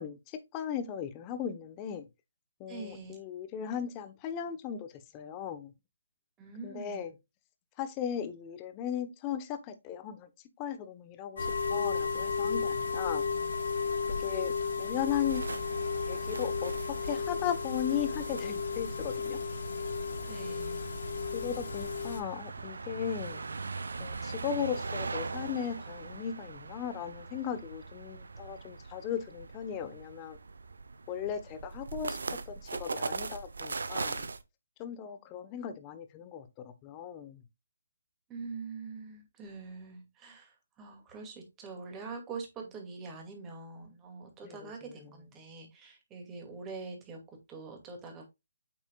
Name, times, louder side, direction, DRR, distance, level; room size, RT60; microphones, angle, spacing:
voice 1, 0.0-2.1 2.6-5.7 6.6-7.1 7.8-10.3 10.6-13.3 14.2-14.5 14.8-15.4 16.1-19.4 21.3-23.4 24.0-30.4 31.1-32.2 32.5-34.3 34.8-37.4 44.4-45.2, left 9 dB, 25° left, 1.1 m, -37 dB
voice 2, 2.7-3.2 6.4-7.0 20.3-20.8 38.3-48.3, right 4 dB, 15° right, 2.4 m, -44 dB
sound 1, 11.4-22.2, left 5 dB, 65° left, 2.4 m, -33 dB
sound 2, 15.3-34.4, right 4 dB, 75° right, 0.8 m, -41 dB
8.3 x 6.0 x 2.4 m
hypercardioid pair, 150°, 0 cm